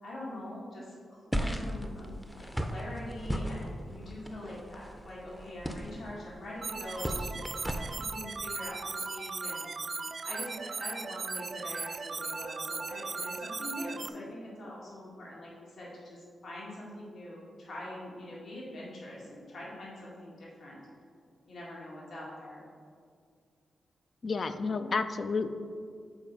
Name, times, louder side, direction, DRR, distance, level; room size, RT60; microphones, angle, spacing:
voice 1, 0.0-7.5 7.9-20.9 21.5-22.6, left 1 dB, 65° left, -5 dB, 1.9 m, -43 dB
sound 1, 1.3-8.1, equal, ahead, 0.6 m, -37 dB
sound 2, 6.6-14.1, right 4 dB, 45° right, 0.3 m, -37 dB
voice 2, 24.2-25.5, left 4 dB, 50° left, 10 dB, 0.4 m, -30 dB
7.2 x 4.6 x 5.3 m, 2.2 s
cardioid pair, 90°, 0 cm